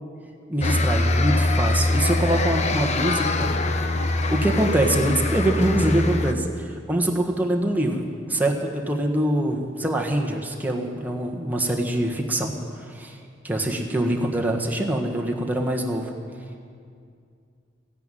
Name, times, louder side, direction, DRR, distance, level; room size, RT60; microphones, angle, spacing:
voice 1, 0.5-3.5 4.3-6.5 6.9-12.5 12.9-13.2 13.4-16.1, right 1 dB, 10° right, 0 dB, 1.5 m, -24 dB
sound 1, 0.6-6.3, left 2 dB, 40° left, 0.7 m, -23 dB
15.0 x 10.5 x 9.2 m, 2.3 s
head